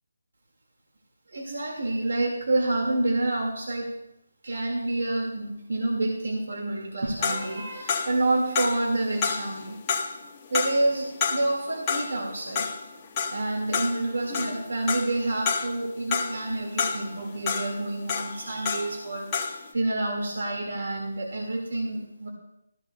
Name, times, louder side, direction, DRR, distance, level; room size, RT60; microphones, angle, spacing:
voice 1, 1.3-3.9 4.4-9.8 10.5-12.7 13.3-22.3, right 2 dB, 65° right, 1 dB, 1.9 m, -28 dB
sound 1, 7.2-19.1 19.3-19.7, left 5 dB, 20° left, 1.2 m, -30 dB
17.0 x 14.0 x 2.2 m, 0.82 s
hypercardioid pair, 170°, 0 cm